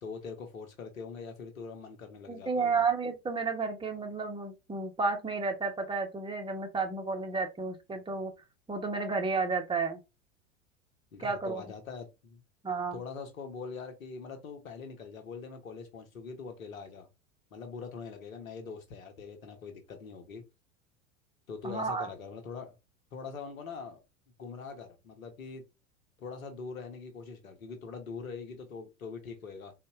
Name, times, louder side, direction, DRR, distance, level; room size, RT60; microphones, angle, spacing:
voice 1, 0.0-2.8 11.1-12.4 12.9-17.1 17.5-20.5 21.5-22.8 23.1-24.0 24.4-25.6 26.2-29.7, left 5 dB, 85° left, 1.1 m, -43 dB
voice 2, 2.3-8.3 8.7-10.0 11.2-11.6 12.6-13.0 21.6-22.1, right 4 dB, 10° right, 0.9 m, -32 dB
4.0 x 2.5 x 2.4 m
hypercardioid pair, 90°, 40 cm